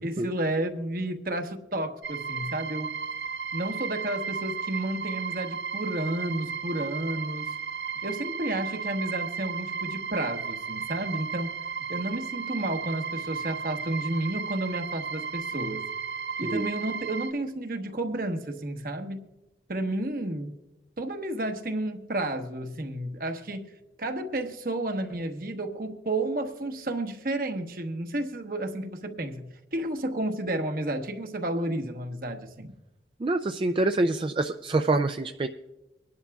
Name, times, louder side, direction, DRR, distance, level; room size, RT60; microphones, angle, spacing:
voice 1, 0.0-3.0 3.5-7.5 8.0-11.5 11.9-15.8 16.4-19.3 19.7-20.5 21.0-23.7 24.0-32.8, right 1 dB, 55° right, 1.1 m, -31 dB
sound 1, 2.0-17.3, right 6 dB, 80° right, 0.8 m, -34 dB
voice 2, 33.2-35.5, right 2 dB, 30° right, 0.3 m, -26 dB
25.0 x 11.0 x 2.3 m
head